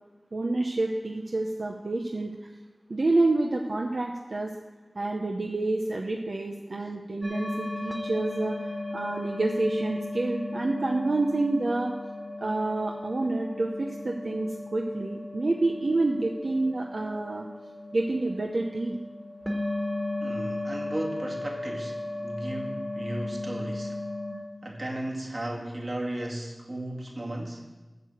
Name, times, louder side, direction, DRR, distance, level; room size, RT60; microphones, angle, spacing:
voice 1, 0.3-2.3 2.9-4.5 4.9-8.6 8.9-12.0 12.4-17.5 17.9-19.0, right 2 dB, 85° right, 1 dB, 0.7 m, -28 dB
sound 1, 7.2-24.3, left 2 dB, 20° right, 1.6 m, -35 dB
voice 2, 20.2-24.0 24.6-27.7, right 1 dB, 55° right, -1 dB, 2.1 m, -35 dB
9.0 x 6.7 x 7.7 m, 1.2 s
wide cardioid pair, 50°, 0 cm